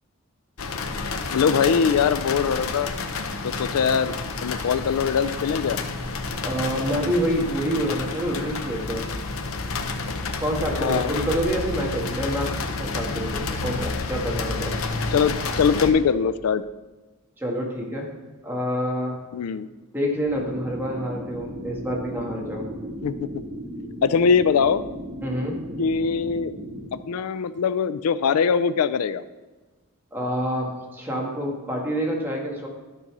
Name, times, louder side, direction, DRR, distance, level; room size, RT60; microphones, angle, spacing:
sound 1, 0.6-15.9, left 3 dB, 70° left, 0.8 m, -30 dB
voice 1, 1.3-2.9 3.4-5.8 10.8-11.1 15.1-16.6 19.3-19.7 23.0-23.3 24.0-24.8 25.8-26.5 26.9-29.2, left 6 dB, 90° left, 15 dB, 0.4 m, -22 dB
voice 2, 6.4-9.1 10.4-14.8 17.4-18.1 18.4-19.2 19.9-22.7 25.2-25.6 30.1-32.7, equal, 10° right, -2 dB, 1.7 m, -27 dB
sound 2, 20.2-26.9, equal, 50° right, 3.1 m, -36 dB
12.0 x 4.1 x 6.0 m, 1.2 s
head